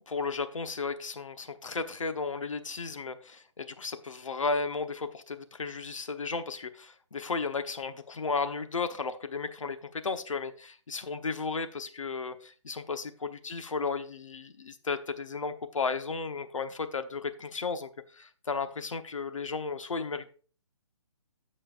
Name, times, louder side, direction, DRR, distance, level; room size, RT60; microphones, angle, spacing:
voice 1, 0.0-20.3, left 4 dB, 85° left, 9 dB, 1.1 m, -34 dB
15.0 x 5.6 x 2.5 m, 0.40 s
hypercardioid pair, 155°, 16 cm